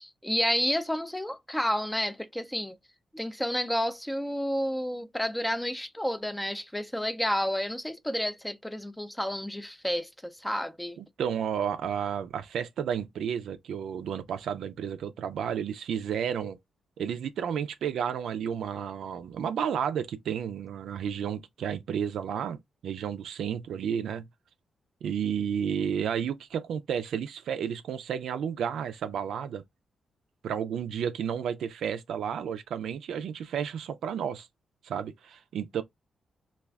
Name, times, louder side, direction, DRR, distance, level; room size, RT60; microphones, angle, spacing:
voice 1, 0.0-2.8 3.1-11.0, equal, 5° left, 0.4 m, -30 dB
voice 2, 11.0-16.6 17.0-24.3 25.0-29.6 30.4-34.5 34.8-35.8, right 8 dB, 85° right, 0.4 m, -32 dB
2.3 x 2.2 x 3.4 m
cardioid pair, 90°, 0 cm